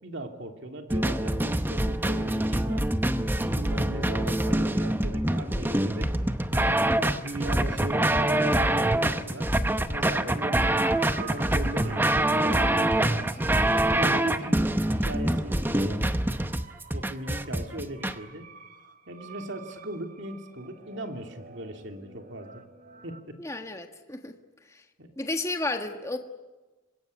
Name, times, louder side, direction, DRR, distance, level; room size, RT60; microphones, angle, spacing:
voice 1, 0.0-2.9 3.4-6.1 6.5-6.8 7.1-9.5 9.9-13.6 14.0-14.7 15.0-16.2 16.9-18.5 19.1-22.6 23.0-23.4 25.0-25.1, right 1 dB, 55° right, 5 dB, 2.9 m, -38 dB
sound 1, 0.9-18.1, right 1 dB, 10° right, 0.8 m, -25 dB
sound 2, 10.7-23.2, right 6 dB, 40° right, 1.3 m, -47 dB
voice 2, 23.4-24.3 25.2-26.2, left 2 dB, 15° left, 6 dB, 1.5 m, -32 dB
25.5 x 21.0 x 9.6 m, 1.2 s
head